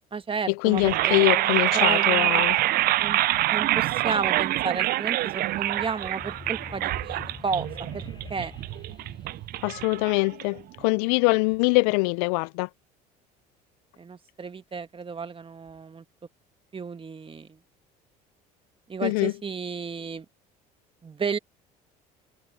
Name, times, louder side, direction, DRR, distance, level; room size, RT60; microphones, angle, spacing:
voice 1, 0.1-2.5 3.0-3.2 3.5-7.7 7.9-8.0 8.3-8.5 14.0-16.0 16.7-17.6 18.9-20.3 21.0-21.4, right 5 dB, 25° right, 1.9 m, -33 dB
voice 2, 0.6-2.6 9.6-12.7 19.0-19.3, left 28 dB, 75° left, 0.5 m, -23 dB
sound 1, 0.7-10.8, right 16 dB, 50° right, 0.4 m, -25 dB
sound 2, 5.4-10.4, left 4 dB, 25° left, 6.4 m, -45 dB
hypercardioid pair, 75°, 20 cm